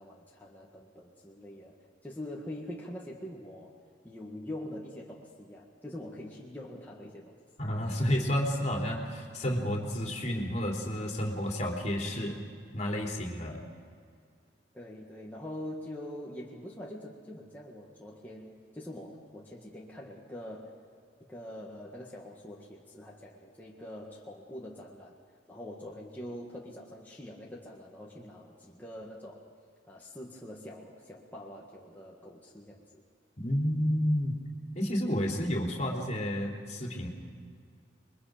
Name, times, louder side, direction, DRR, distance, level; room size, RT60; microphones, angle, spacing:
voice 1, 0.0-1.8 2.0-3.8 4.0-7.4 14.7-20.8 21.2-25.2 25.5-29.5 29.9-33.0, left 1 dB, 10° left, -4 dB, 1.9 m, -44 dB
voice 2, 7.6-12.4 12.7-13.6 33.4-34.4 34.7-37.1, equal, 40° left, 0 dB, 3.3 m, -30 dB
28.0 x 22.5 x 5.2 m, 2.2 s
head